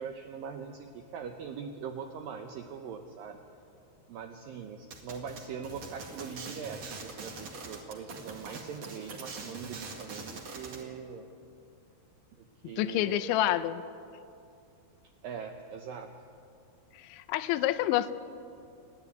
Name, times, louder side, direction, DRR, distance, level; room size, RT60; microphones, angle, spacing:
voice 1, 0.0-3.4 4.1-11.3 12.4-13.4 15.2-16.1, right 6 dB, 80° right, 5 dB, 2.0 m, -42 dB
sound 1, 4.9-10.8, right 4 dB, 45° right, 2.4 m, -43 dB
voice 2, 12.6-13.8 17.0-18.1, left 13 dB, 90° left, 11 dB, 3.1 m, -28 dB
30.0 x 10.5 x 9.5 m, 2.6 s
omnidirectional pair, 5.2 m